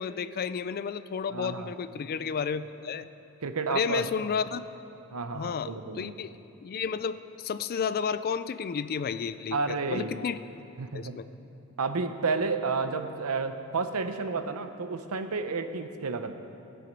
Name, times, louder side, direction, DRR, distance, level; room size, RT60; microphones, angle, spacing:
voice 1, 0.0-3.1 3.7-4.6 5.3-6.3 6.6-10.4 10.9-11.2, left 6 dB, 45° left, 14 dB, 0.4 m, -32 dB
voice 2, 1.3-1.7 3.4-4.1 5.1-6.2 9.5-10.2 10.8-11.2 11.8-16.4, right 4 dB, 75° right, 9 dB, 0.7 m, -31 dB
16.0 x 8.6 x 5.3 m, 2.8 s
head